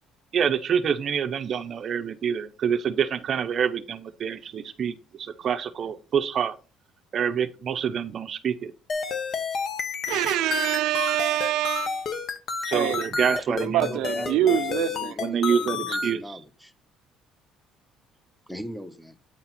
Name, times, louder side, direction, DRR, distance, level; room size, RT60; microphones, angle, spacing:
voice 1, 0.3-6.5 7.1-8.7 12.6-14.0 15.2-16.4, right 7 dB, 40° right, 0.6 m, -27 dB
sound 1, 8.9-16.1, left 5 dB, 45° left, 1.0 m, -30 dB
voice 2, 10.1-12.1 12.7-13.1 13.6-15.1, right 12 dB, 75° right, 0.5 m, -25 dB
voice 3, 13.5-16.7 18.5-19.1, equal, ahead, 0.6 m, -38 dB
8.6 x 4.2 x 4.2 m
cardioid pair, 145°, 0 cm